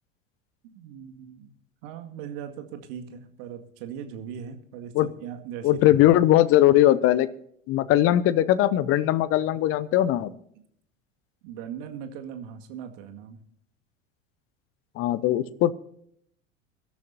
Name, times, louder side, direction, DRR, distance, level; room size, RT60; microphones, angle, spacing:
voice 1, 0.6-1.5 1.8-5.9 11.4-13.4, right 8 dB, 50° right, 6 dB, 2.1 m, -39 dB
voice 2, 5.6-7.3 7.7-10.3 15.0-15.8, left 13 dB, 35° left, 17 dB, 0.8 m, -20 dB
24.5 x 12.5 x 2.8 m, 0.67 s
figure-of-eight pair, 75°, 39 cm